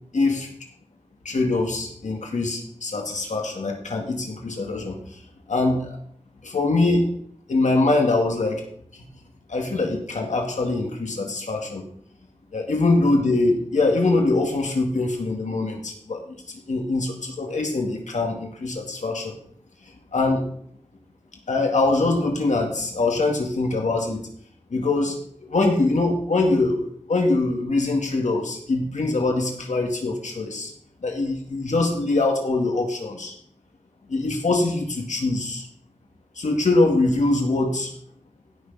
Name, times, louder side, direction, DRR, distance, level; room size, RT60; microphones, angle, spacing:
voice 1, 0.1-0.5 1.2-5.2 5.5-6.0 6.4-7.1 7.5-8.7 8.9-9.1 9.5-11.8 12.5-19.3 20.1-20.5 21.5-24.3 24.7-25.2 25.4-30.7 31.0-33.3 34.1-35.7 36.4-37.9, left 2 dB, 85° left, 1 dB, 2.1 m, -23 dB
16.0 x 6.4 x 4.0 m, 0.62 s
wide cardioid pair, 85°, 12 cm